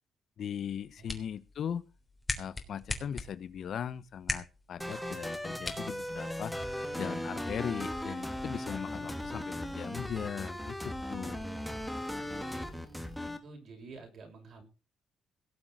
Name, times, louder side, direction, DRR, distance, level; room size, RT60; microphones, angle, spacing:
voice 1, 0.4-1.8 2.4-6.5 7.0-11.5, left 8 dB, 60° left, 15 dB, 1.1 m, -39 dB
sound 1, 0.7-6.7, left 3 dB, 20° left, 3.3 m, -41 dB
sound 2, 4.8-13.4, left 1 dB, ahead, 2.7 m, -37 dB
voice 2, 12.0-14.6, right 3 dB, 55° right, 3 dB, 7.0 m, -51 dB
18.0 x 7.1 x 6.6 m, 0.33 s
cardioid pair, 90°, 0 cm